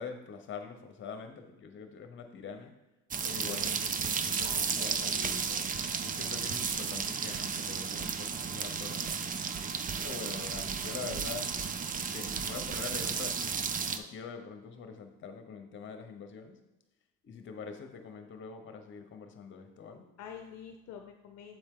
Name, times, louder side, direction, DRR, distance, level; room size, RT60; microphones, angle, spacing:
voice 1, 0.0-2.7 3.2-5.4 6.0-9.3 10.0-11.5 12.1-16.6 17.2-20.1, left 5 dB, 40° left, 6 dB, 1.0 m, -44 dB
sound 1, 3.1-14.0, right 6 dB, 30° right, 0.5 m, -33 dB
voice 2, 3.3-4.1 4.4-5.7 20.2-21.6, left 8 dB, 60° left, 5 dB, 0.7 m, -48 dB
7.6 x 4.3 x 3.7 m, 1.0 s
cardioid pair, 105°, 30 cm